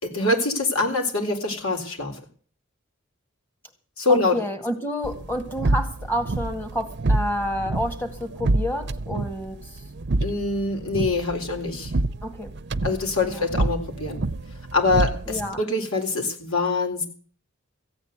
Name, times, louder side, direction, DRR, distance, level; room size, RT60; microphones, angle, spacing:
voice 1, 0.0-2.2 4.0-4.4 10.2-11.9 12.8-14.2 14.7-17.1, left 3 dB, 85° left, 3 dB, 3.9 m, -24 dB
voice 2, 4.1-9.8 12.2-12.5 13.2-13.5 15.3-15.6, equal, 10° left, 6 dB, 2.0 m, -29 dB
sound 1, 5.0-15.6, right 2 dB, 55° right, 0.6 m, -28 dB
15.0 x 8.7 x 8.1 m, 0.43 s
head